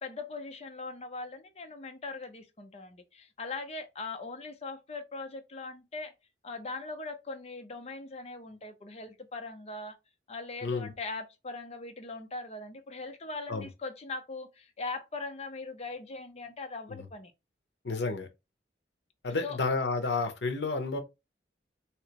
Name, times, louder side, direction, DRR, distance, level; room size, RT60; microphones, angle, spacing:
voice 1, 0.0-6.1 6.4-9.9 10.3-17.3 19.4-19.6, left 3 dB, 35° left, 0.6 m, -40 dB
voice 2, 10.6-10.9 13.5-13.7 16.9-17.1 17.8-18.3 19.2-21.0, left 3 dB, 75° left, 0.8 m, -31 dB
3.2 x 2.8 x 2.9 m
head